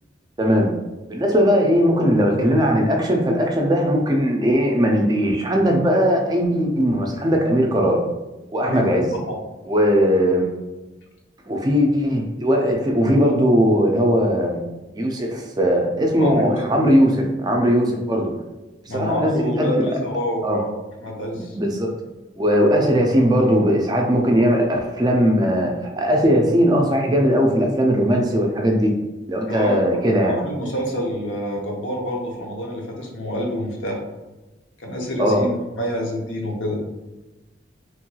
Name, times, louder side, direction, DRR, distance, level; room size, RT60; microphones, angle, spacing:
voice 1, 0.4-0.7 1.1-8.0 8.5-9.1 9.7-10.5 11.5-14.6 14.9-18.3 18.9-19.9 20.4-20.6 21.3-21.9 22.4-25.7 26.0-28.9 29.3-30.4 35.2-35.5, equal, 20° right, 1 dB, 0.3 m, -19 dB
voice 2, 16.2-16.6 18.9-20.7 21.0-21.6 29.5-29.8 30.2-34.0 34.8-36.8, equal, 85° left, -1 dB, 0.8 m, -27 dB
3.0 x 3.0 x 2.2 m, 1.1 s
head